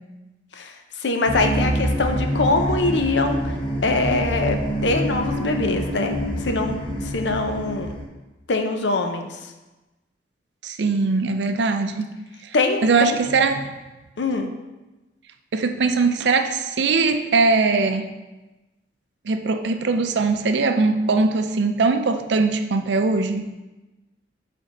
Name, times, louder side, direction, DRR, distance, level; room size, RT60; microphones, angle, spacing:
voice 1, 0.5-3.5 3.8-7.9 8.5-9.4 12.5-13.2 14.2-14.5, left 3 dB, 70° left, 5 dB, 0.7 m, -23 dB
sound 1, 1.3-8.0, equal, 25° left, 1.0 m, -26 dB
voice 2, 10.6-12.1 12.8-13.7 15.5-18.1 19.3-23.4, right 4 dB, 65° right, 8 dB, 0.5 m, -21 dB
5.2 x 4.4 x 5.0 m, 1.1 s
head